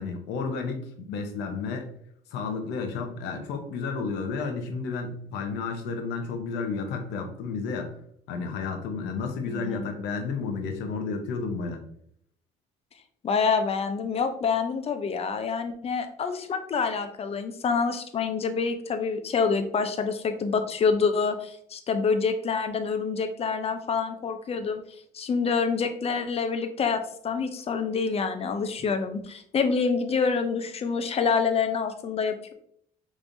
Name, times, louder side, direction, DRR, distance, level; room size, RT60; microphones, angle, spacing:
voice 1, 0.0-1.9 2.3-7.9 8.3-11.8, left 4 dB, 90° left, 4 dB, 0.8 m, -32 dB
voice 2, 9.5-9.8 13.2-24.8 25.1-32.5, left 5 dB, 35° left, 8 dB, 0.6 m, -27 dB
5.2 x 3.2 x 2.6 m, 0.66 s
cardioid pair, 110°, 17 cm